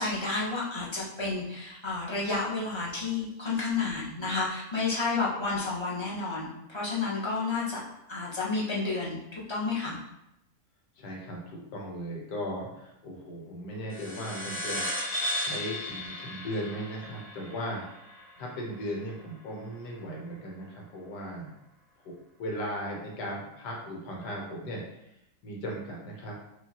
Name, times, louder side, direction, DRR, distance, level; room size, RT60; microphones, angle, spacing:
voice 1, 0.0-7.8 8.1-10.0, left 3 dB, 20° left, -7 dB, 0.8 m, -31 dB
voice 2, 11.0-21.5 22.4-24.8 25.4-26.3, equal, 85° left, -2 dB, 1.6 m, -37 dB
sound 1, 13.9-18.8, left 1 dB, 55° left, 1.1 m, -35 dB
4.8 x 2.8 x 2.9 m, 0.84 s
omnidirectional pair, 1.8 m